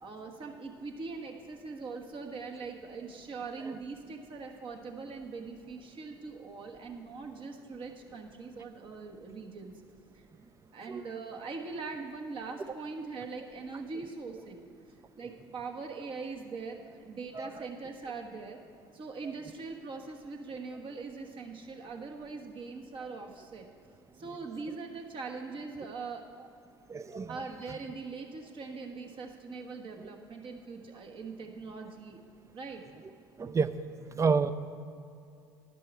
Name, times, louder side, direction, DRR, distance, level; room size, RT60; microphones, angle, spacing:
voice 1, 0.0-9.7 10.1-10.2 10.7-14.7 15.2-18.6 18.9-23.7 24.1-26.2 27.3-32.2 32.5-32.8, right 4 dB, 40° right, 2 dB, 1.4 m, -41 dB
voice 2, 26.9-27.3 33.4-33.7 34.2-34.5, right 5 dB, 25° right, 13 dB, 0.5 m, -28 dB
11.0 x 10.5 x 4.5 m, 2.4 s
figure-of-eight pair, 65°, 13 cm